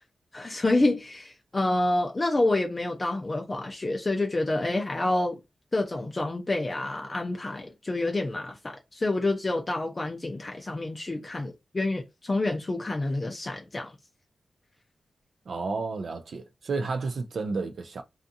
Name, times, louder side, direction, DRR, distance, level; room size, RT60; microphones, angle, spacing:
voice 1, 0.3-5.4 5.7-13.9, left 2 dB, 25° left, 0.4 m, -28 dB
voice 2, 15.5-18.0, right 4 dB, 65° right, 0.3 m, -31 dB
2.5 x 2.4 x 2.6 m
wide cardioid pair, 155°, 0 cm